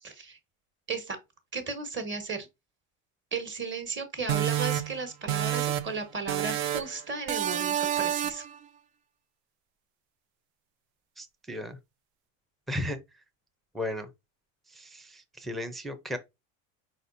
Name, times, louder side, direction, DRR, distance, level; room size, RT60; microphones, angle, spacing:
voice 1, 0.0-0.4 0.9-1.2 1.5-2.5 3.3-8.4, right 4 dB, 30° right, 1.4 m, -35 dB
sound 1, 4.3-6.0 6.3-7.0 7.3-8.5, right 11 dB, 65° right, 0.7 m, -29 dB
voice 2, 11.2-11.8 12.7-13.0 13.7-14.1 14.7-16.2, left 1 dB, ahead, 0.5 m, -35 dB
4.9 x 4.1 x 2.6 m
supercardioid pair, 125°, 39 cm